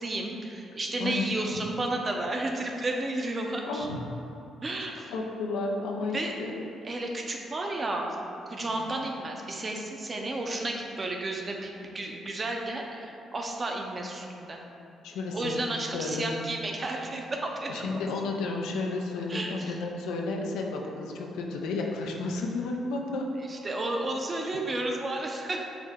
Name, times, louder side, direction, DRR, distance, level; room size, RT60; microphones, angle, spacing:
voice 1, 0.0-3.9 4.6-5.1 6.1-6.3 6.8-8.2 8.5-14.6 15.3-18.0 19.3-19.7 23.5-25.7, right 2 dB, 35° right, 1 dB, 0.5 m, -32 dB
voice 2, 1.0-1.7 3.6-4.0 4.8-6.7 8.6-8.8 15.0-15.6 15.9-16.3 17.7-23.3, left 3 dB, 85° left, 1 dB, 0.4 m, -32 dB
4.8 x 2.1 x 3.5 m, 2.8 s
supercardioid pair, 65°, 0 cm